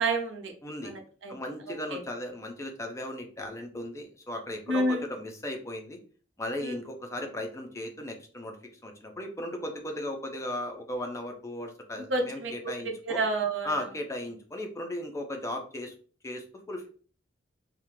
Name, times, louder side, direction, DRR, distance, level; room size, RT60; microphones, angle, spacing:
voice 1, 0.0-0.5 0.8-1.3 1.9-2.0 4.7-5.0 6.6-6.8 12.1-12.5 13.1-13.7, right 2 dB, 75° right, 4 dB, 0.6 m, -28 dB
voice 2, 0.6-0.9 1.3-6.0 6.4-13.2 13.6-15.9 16.2-16.9, left 1 dB, 15° left, 3 dB, 0.4 m, -36 dB
2.3 x 2.1 x 3.0 m, 0.41 s
head